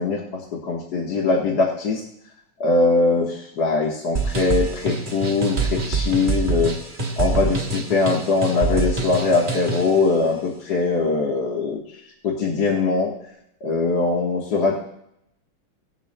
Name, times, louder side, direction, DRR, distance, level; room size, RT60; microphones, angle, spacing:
voice 1, 0.0-2.0 2.6-6.7 7.2-11.8 12.2-13.1 13.6-14.8, left 3 dB, 55° left, -3 dB, 1.8 m, -21 dB
sound 1, 4.1-10.0, right 4 dB, 30° right, 1.0 m, -25 dB
19.0 x 11.0 x 2.2 m, 0.77 s
omnidirectional pair, 2.2 m